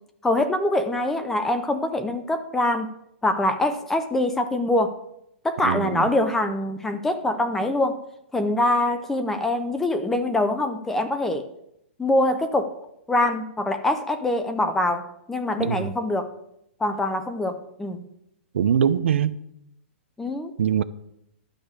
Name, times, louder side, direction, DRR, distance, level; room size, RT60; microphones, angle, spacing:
voice 1, 0.2-2.9 3.2-4.9 5.4-8.0 8.3-11.5 12.0-12.7 13.1-16.3 16.8-18.0 20.2-20.5, left 1 dB, 5° left, 0.5 m, -24 dB
voice 2, 5.6-6.1 15.6-15.9 18.5-19.4 20.6-20.8, right 8 dB, 70° right, 0.7 m, -22 dB
11.5 x 5.3 x 7.9 m
hypercardioid pair, 175°, 7 cm